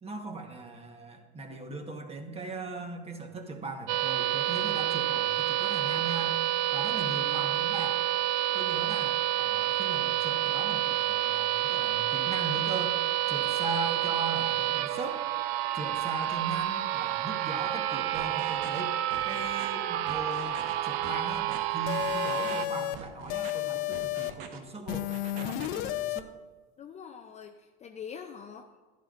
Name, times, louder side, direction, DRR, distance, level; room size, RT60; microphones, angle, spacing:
voice 1, 0.0-6.4 6.7-8.0 8.5-13.0 13.3-15.3 15.7-19.0 19.2-26.3, right 3 dB, 20° right, 4 dB, 1.2 m, -39 dB
sound 1, 3.9-22.7, right 13 dB, 65° right, 0.5 m, -29 dB
sound 2, 18.1-18.8 19.1-19.7 20.1-20.7 21.0-21.6 22.0-22.7 23.0-23.5 23.9-24.6 24.9-25.8, right 7 dB, 85° right, 1.2 m, -45 dB
sound 3, 21.9-23.0 23.3-24.3 24.9-26.2, left 15 dB, 75° left, 0.6 m, -32 dB
voice 2, 26.8-28.8, left 7 dB, 25° left, 5 dB, 0.4 m, -44 dB
11.5 x 11.0 x 2.5 m, 1.3 s
supercardioid pair, 120°, 31 cm